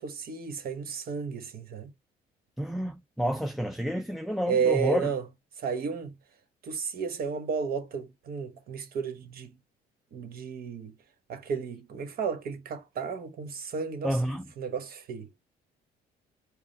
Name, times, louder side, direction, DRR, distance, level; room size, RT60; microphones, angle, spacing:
voice 1, 0.0-1.9 4.5-5.3 5.6-6.1 6.6-9.5 10.1-10.9 11.3-14.2 14.6-15.3, right 6 dB, 60° right, 1.1 m, -32 dB
voice 2, 2.6-5.1 14.0-14.5, equal, ahead, 0.3 m, -29 dB
4.8 x 2.0 x 3.9 m
cardioid pair, 110°, 17 cm